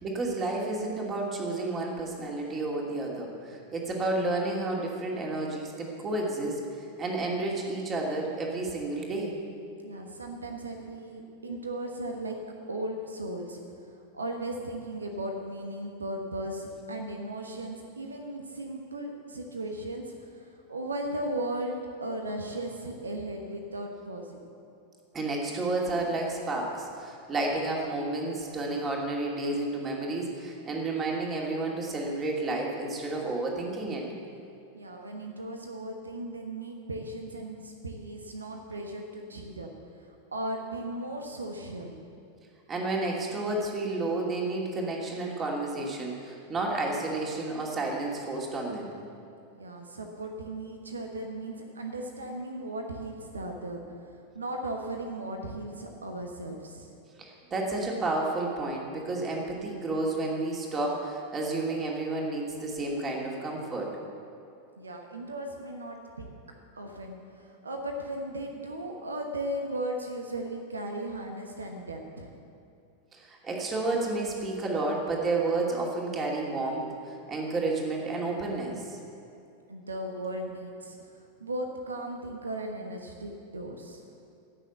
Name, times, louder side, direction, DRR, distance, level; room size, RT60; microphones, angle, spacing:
voice 1, 0.0-9.4 25.1-34.0 42.7-48.9 57.2-63.9 73.1-76.9 77.3-79.0, right 2 dB, 25° right, -1 dB, 2.5 m, -31 dB
voice 2, 9.8-12.4 12.7-24.4 34.7-39.7 40.0-42.1 49.5-56.9 64.8-66.3 66.7-72.3 79.7-84.1, right 1 dB, 75° right, 3 dB, 1.2 m, -37 dB
16.0 x 6.5 x 8.1 m, 2.6 s
figure-of-eight pair, 90°, 0 cm